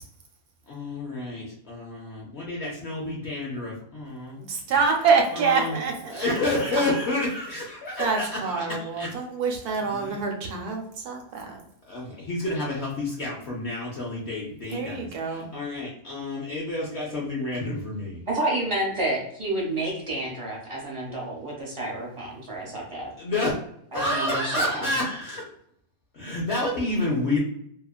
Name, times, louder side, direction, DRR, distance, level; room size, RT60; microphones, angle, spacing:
voice 1, 0.7-4.4 5.3-5.8 6.1-9.1 9.7-10.3 11.9-18.2 23.2-23.6 23.9-25.4 26.1-27.4, left 2 dB, 65° left, -3 dB, 0.7 m, -29 dB
voice 2, 4.4-6.3 6.8-6.9 8.0-11.5 14.7-15.5, right 5 dB, 80° right, 1 dB, 1.2 m, -26 dB
voice 3, 18.3-23.1 23.9-24.8, right 1 dB, 30° right, -3 dB, 0.6 m, -29 dB
2.8 x 2.4 x 2.3 m, 0.70 s
omnidirectional pair, 1.7 m